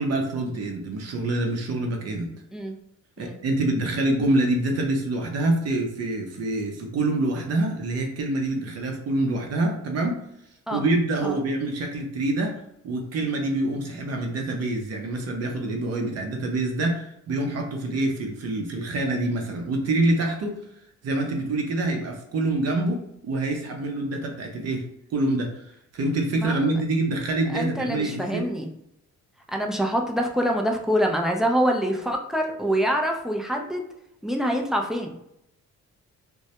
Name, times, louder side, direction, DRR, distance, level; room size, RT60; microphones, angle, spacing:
voice 1, 0.0-2.3 3.2-10.2 10.7-20.6 21.0-24.8 25.1-25.6 25.9-28.5, right 2 dB, 55° right, 2 dB, 0.6 m, -26 dB
voice 2, 27.5-28.7 29.5-33.8 34.2-35.1, equal, ahead, 1 dB, 0.3 m, -25 dB
2.2 x 2.0 x 2.8 m, 0.78 s
cardioid pair, 90°, 30 cm